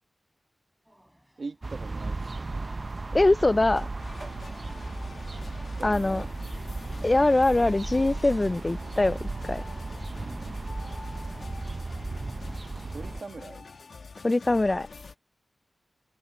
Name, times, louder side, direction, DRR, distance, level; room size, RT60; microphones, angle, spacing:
sound 1, 0.9-12.9, equal, 5° right, 5.8 m, -60 dB
voice 1, 1.4-2.5 5.8-6.3 6.8-7.1 12.9-13.7, right 4 dB, 60° right, 1.8 m, -41 dB
sound 2, 1.6-13.2, right 3 dB, 40° right, 0.5 m, -35 dB
voice 2, 3.1-3.9 5.8-6.2 7.0-9.6 14.2-14.9, left 2 dB, 30° left, 0.4 m, -23 dB
sound 3, 4.0-15.1, left 4 dB, 70° left, 1.7 m, -45 dB
open air
wide cardioid pair, 85°, 0 cm